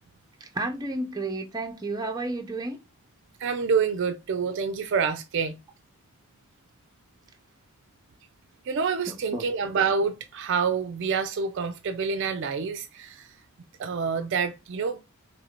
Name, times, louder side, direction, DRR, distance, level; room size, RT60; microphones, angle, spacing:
voice 1, 0.5-2.8 9.1-9.5, right 2 dB, 20° right, 0.7 m, -31 dB
voice 2, 3.4-5.6 8.7-13.3 13.8-15.0, right 5 dB, 55° right, 0.4 m, -27 dB
3.2 x 2.6 x 4.4 m
head